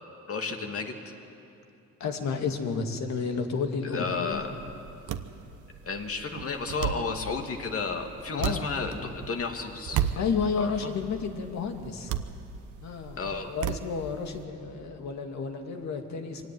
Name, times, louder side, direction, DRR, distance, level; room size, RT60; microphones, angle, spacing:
voice 1, 0.3-1.1 3.9-4.5 5.8-10.0 10.6-10.9 13.2-13.5, left 4 dB, 50° left, 4 dB, 2.6 m, -32 dB
voice 2, 2.0-4.5 8.3-8.7 9.0-9.2 10.2-12.1 12.8-13.2 13.5-16.5, left 5 dB, 65° left, 5 dB, 2.3 m, -31 dB
sound 1, 3.9-14.4, right 9 dB, 80° right, 1.1 m, -36 dB
23.5 x 17.0 x 9.5 m, 2.8 s
cardioid pair, 90°, 30 cm